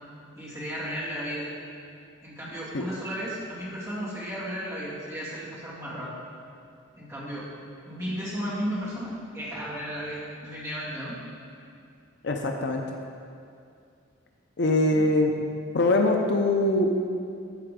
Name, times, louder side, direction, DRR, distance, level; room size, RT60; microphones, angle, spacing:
voice 1, 0.4-1.5 2.2-6.1 6.9-7.5 7.9-11.2 14.9-15.0, equal, 15° right, -9 dB, 2.3 m, -34 dB
voice 2, 12.2-12.8 14.6-15.3 15.7-16.9, left 2 dB, 60° left, 3 dB, 0.6 m, -22 dB
13.0 x 5.6 x 3.7 m, 2.4 s
head